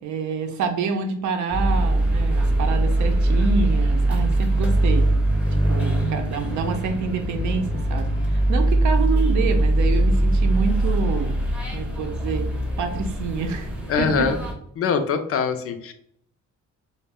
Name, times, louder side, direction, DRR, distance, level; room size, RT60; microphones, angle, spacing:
voice 1, 0.0-5.1 5.5-11.4 11.7-12.5 12.8-13.7 14.0-14.3, right 5 dB, 70° right, 5 dB, 0.6 m, -27 dB
sound 1, 1.5-14.5, right 1 dB, 5° right, 0.6 m, -21 dB
voice 2, 13.9-14.4 14.8-15.9, left 6 dB, 50° left, 7 dB, 0.4 m, -23 dB
2.1 x 2.0 x 3.5 m, 0.70 s
cardioid pair, 90°, 30 cm